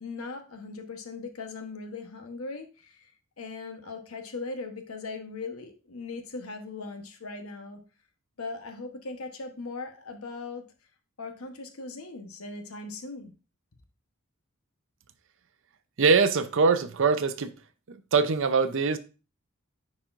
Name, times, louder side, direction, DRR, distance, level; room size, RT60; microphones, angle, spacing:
voice 1, 0.0-3.1 3.4-7.8 8.4-10.6 11.2-13.3, left 3 dB, 75° left, 1.1 m, -39 dB
voice 2, 16.0-17.5 17.9-19.0, right 5 dB, 60° right, 0.6 m, -23 dB
10.0 x 4.2 x 2.5 m
head